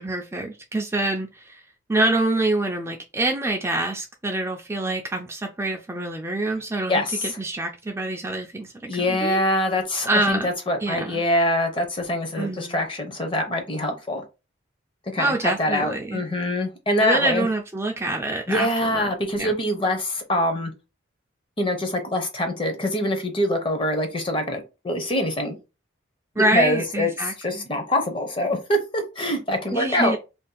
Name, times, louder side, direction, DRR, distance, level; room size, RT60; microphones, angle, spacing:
voice 1, 0.0-1.6 1.9-9.4 10.0-10.5 10.8-11.2 12.4-12.8 15.2-16.2 17.0-19.1 19.4-19.5 26.4-27.6 29.7-30.2, right 2 dB, 15° right, 1 dB, 0.3 m, -26 dB
voice 2, 6.9-7.4 8.9-14.2 15.1-17.5 18.5-20.7 21.6-25.5 26.4-30.1, left 1 dB, 25° left, 5 dB, 0.6 m, -24 dB
2.6 x 2.4 x 3.8 m, 0.28 s
head